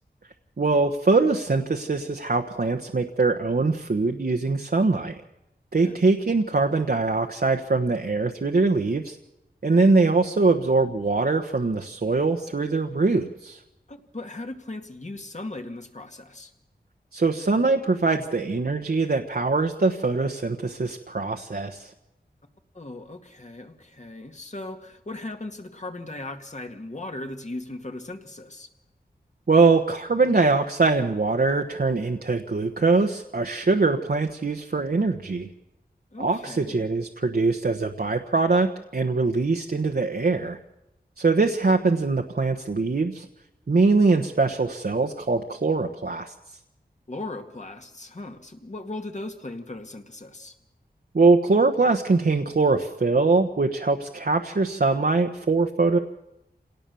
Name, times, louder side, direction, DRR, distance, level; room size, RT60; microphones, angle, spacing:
voice 1, 0.6-5.2 5.7-9.2 9.6-13.6 17.1-21.9 29.5-35.5 36.2-40.6 41.2-43.2 43.7-46.3 51.1-56.0, right 3 dB, 60° right, 4 dB, 1.2 m, -22 dB
voice 2, 13.9-16.5 22.7-28.7 36.1-36.9 47.1-50.5, left 2 dB, 40° left, 5 dB, 2.3 m, -38 dB
27.0 x 18.5 x 7.0 m, 0.92 s
wide cardioid pair, 65°, 18 cm